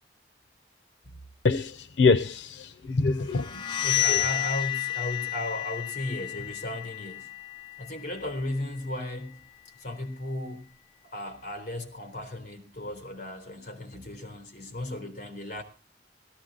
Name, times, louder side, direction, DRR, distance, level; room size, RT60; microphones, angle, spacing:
voice 1, 1.4-3.5 4.1-4.2, left 4 dB, 90° left, 0.7 m, -24 dB
sound 1, 3.3-9.0, left 15 dB, 25° left, 0.8 m, -31 dB
voice 2, 3.5-7.3 7.8-9.4 9.8-10.7 11.0-15.6, left 1 dB, 45° left, 3.7 m, -35 dB
18.0 x 14.0 x 3.9 m
head